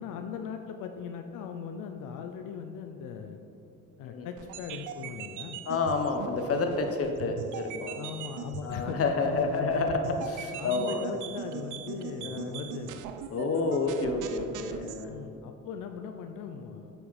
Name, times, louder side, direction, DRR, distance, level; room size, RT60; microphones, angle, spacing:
voice 1, 0.0-3.4 4.0-5.6 8.0-9.0 9.3-9.8 10.6-13.0 15.1-16.9, left 7 dB, 90° left, 6 dB, 0.5 m, -39 dB
sound 1, 4.4-15.0, right 9 dB, 80° right, 0.5 m, -41 dB
voice 2, 5.7-8.0 8.6-11.0 12.2-12.5 13.3-15.1, left 3 dB, 50° left, 5 dB, 1.0 m, -29 dB
8.1 x 5.8 x 4.1 m, 2.6 s
cardioid pair, 90°, 30 cm